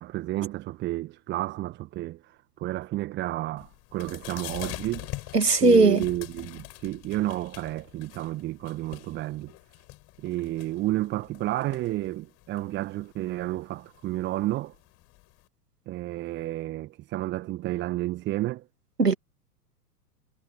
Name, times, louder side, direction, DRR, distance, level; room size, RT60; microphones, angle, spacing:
voice 1, 0.0-5.3 5.6-9.5 10.2-14.7 15.9-18.6, right 16 dB, 25° right, 1.6 m, -31 dB
sound 1, 3.6-15.5, left 22 dB, 30° left, 6.4 m, -45 dB
voice 2, 5.3-6.0 19.0-19.1, right 3 dB, 80° right, 2.5 m, -18 dB
figure-of-eight pair, 105°, 47 cm